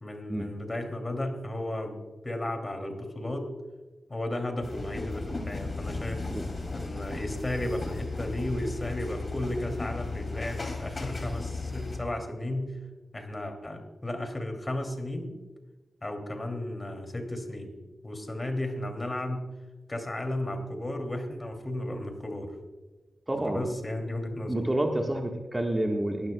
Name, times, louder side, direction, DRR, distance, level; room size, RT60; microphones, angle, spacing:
voice 1, 0.0-3.5 4.1-6.3 6.7-12.7 13.1-15.3 16.0-17.7 18.0-19.4 19.9-22.5 23.4-24.5, left 1 dB, 30° left, 4 dB, 2.6 m, -34 dB
sound 1, 4.6-12.0, left 3 dB, 50° left, 2.5 m, -35 dB
voice 2, 23.3-23.6 24.5-26.3, right 1 dB, 25° right, 2 dB, 1.4 m, -28 dB
18.5 x 12.5 x 2.2 m, 1.2 s
cardioid pair, 55°, 0 cm